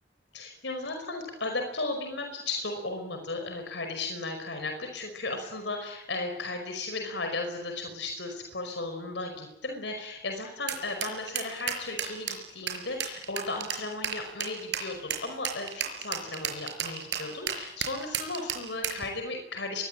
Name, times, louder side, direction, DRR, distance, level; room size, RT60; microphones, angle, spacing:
voice 1, 0.3-19.8, left 2 dB, 85° left, 4 dB, 5.3 m, -35 dB
sound 1, 10.7-19.0, right 9 dB, 80° right, 5.3 m, -33 dB
25.0 x 23.0 x 8.9 m, 0.91 s
head